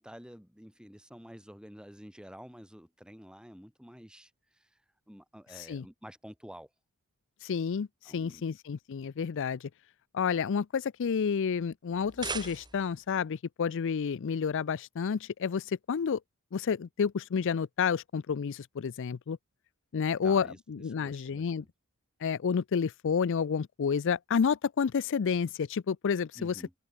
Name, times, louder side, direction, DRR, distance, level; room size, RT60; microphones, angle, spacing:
voice 1, 0.0-4.7 5.1-6.7 7.7-7.8 8.0-8.4 20.2-21.7 26.3-26.7, equal, 5° right, 4.7 m, -50 dB
voice 2, 7.4-9.7 10.1-16.2 16.5-19.4 19.9-21.6 22.2-26.8, left 6 dB, 55° left, 0.4 m, -30 dB
sound 1, 11.9-13.1, right 4 dB, 20° right, 2.3 m, -39 dB
open air
head